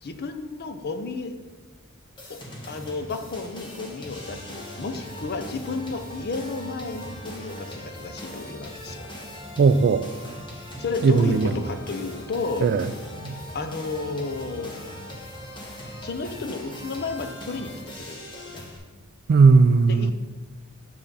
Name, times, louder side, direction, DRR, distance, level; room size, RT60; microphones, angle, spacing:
voice 1, 0.0-1.4 2.3-2.4 2.7-9.0 10.8-12.7 13.5-14.7 16.0-17.7 18.0-18.6 19.9-20.1, left 3 dB, 45° left, 0.6 m, -32 dB
sound 1, 2.2-18.8, equal, 20° left, 1.3 m, -40 dB
voice 2, 9.6-10.0 11.0-11.5 12.6-12.8 13.3-13.4 19.3-20.1, right 4 dB, 45° right, 0.3 m, -17 dB
6.7 x 5.8 x 4.0 m
head